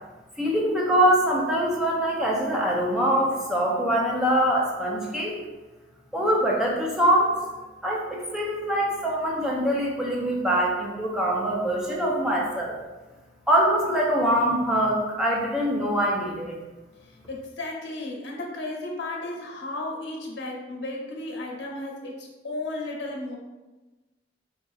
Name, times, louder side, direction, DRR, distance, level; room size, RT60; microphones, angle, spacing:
voice 1, 0.4-5.4 6.1-7.3 7.8-12.7 13.5-16.6, right 1 dB, 5° right, -4 dB, 0.5 m, -23 dB
voice 2, 17.3-23.4, left 2 dB, 80° left, 0 dB, 0.8 m, -34 dB
3.9 x 3.5 x 2.3 m, 1.2 s
head